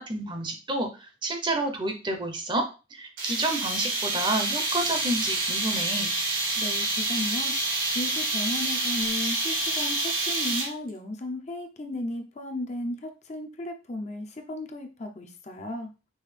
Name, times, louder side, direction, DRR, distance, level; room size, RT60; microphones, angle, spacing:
voice 1, 0.0-2.6 2.9-6.1, right 1 dB, 25° right, 5 dB, 0.7 m, -29 dB
sound 1, 3.2-10.9, right 2 dB, 85° right, 1.8 m, -28 dB
voice 2, 6.6-7.5 7.9-15.9, left 1 dB, 35° left, 4 dB, 0.6 m, -35 dB
5.4 x 2.7 x 3.3 m, 0.31 s
head